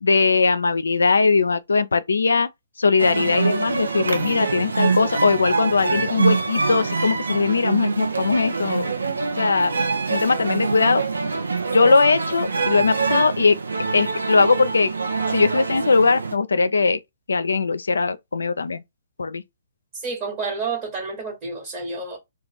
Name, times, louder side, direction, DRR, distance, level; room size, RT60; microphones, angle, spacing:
voice 1, 0.0-2.5 2.8-9.0 9.4-9.7 10.1-11.0 11.7-13.6 13.9-14.9 15.3-17.0 17.3-18.8 19.2-19.4, left 4 dB, 80° left, 0.4 m, -20 dB
sound 1, 3.0-16.3, right 4 dB, 85° right, 0.6 m, -25 dB
voice 2, 20.0-22.2, right 4 dB, 30° right, 1.1 m, -29 dB
2.5 x 2.2 x 3.3 m
hypercardioid pair, 135°, 0 cm